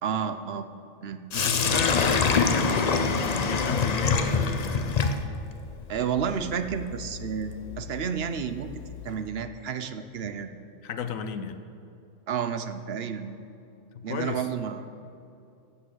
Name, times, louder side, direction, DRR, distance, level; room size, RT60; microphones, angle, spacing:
voice 1, 0.0-0.7 1.0-1.2 5.9-8.7 9.0-10.5 12.3-13.4 14.0-14.9, right 7 dB, 55° right, 9 dB, 0.9 m, -31 dB
voice 2, 1.3-5.0 10.8-11.6 13.9-14.4, left 6 dB, 85° left, 10 dB, 1.2 m, -33 dB
Sink (filling or washing), 1.3-9.2, left 5 dB, 45° left, 0.6 m, -27 dB
14.5 x 8.5 x 6.4 m, 2.5 s
omnidirectional pair, 1.4 m